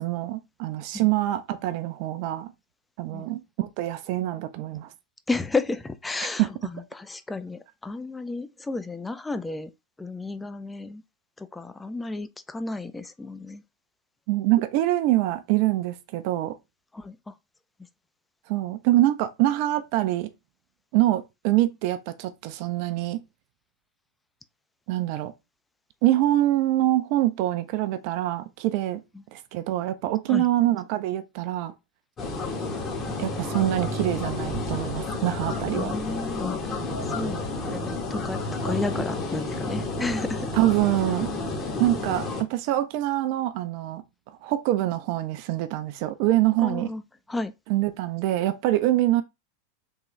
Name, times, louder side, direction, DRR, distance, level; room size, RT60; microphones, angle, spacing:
voice 1, 0.0-2.5 3.0-4.9 6.4-6.5 14.3-16.6 18.5-20.3 20.9-23.2 24.9-25.3 26.0-29.0 29.3-31.7 33.2-35.9 40.5-41.3 41.8-44.0 44.4-46.9 47.7-49.2, right 15 dB, 55° right, 0.4 m, -25 dB
voice 2, 5.3-9.7 10.0-11.0 11.4-13.6 16.9-17.3 30.3-30.4 35.7-36.6 37.1-37.4 37.7-40.5 46.6-47.0 47.3-47.5, left 3 dB, 10° left, 0.4 m, -32 dB
sound 1, 32.2-42.4, left 2 dB, 30° left, 1.2 m, -30 dB
3.6 x 2.9 x 3.1 m
hypercardioid pair, 90°, 0 cm